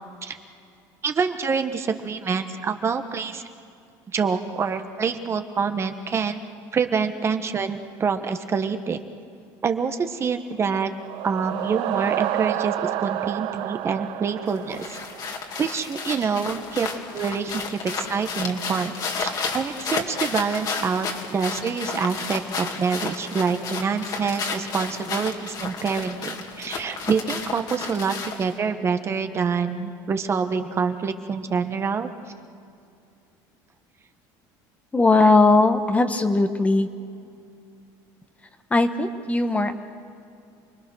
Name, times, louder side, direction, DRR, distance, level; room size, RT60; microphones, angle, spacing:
voice 1, 1.0-3.4 4.1-6.4 6.7-9.0 9.6-10.9 11.2-15.0 15.6-18.9 19.2-32.1, right 5 dB, 30° right, 7 dB, 1.2 m, -26 dB
sound 1, 10.7-15.5, right 12 dB, 70° right, 0.9 m, -29 dB
sound 2, 14.5-28.6, left 5 dB, 45° left, 2.5 m, -32 dB
voice 2, 34.9-36.9 38.7-39.7, left 3 dB, 15° left, 8 dB, 1.2 m, -19 dB
29.0 x 20.0 x 6.3 m, 2.5 s
cardioid pair, 120°, 9 cm